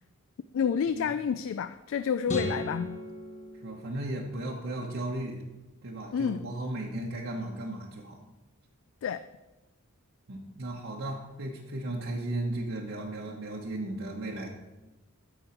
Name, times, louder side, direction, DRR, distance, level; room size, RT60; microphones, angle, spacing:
voice 1, 0.5-3.0 6.1-6.5 9.0-9.2, left 7 dB, 60° left, 12 dB, 0.3 m, -29 dB
sound 1, 2.3-4.6, equal, 35° left, 1.4 m, -37 dB
voice 2, 3.6-5.4 5.8-8.2 10.3-14.5, right 1 dB, 60° right, -3 dB, 1.1 m, -35 dB
13.5 x 5.4 x 4.4 m, 1.1 s
head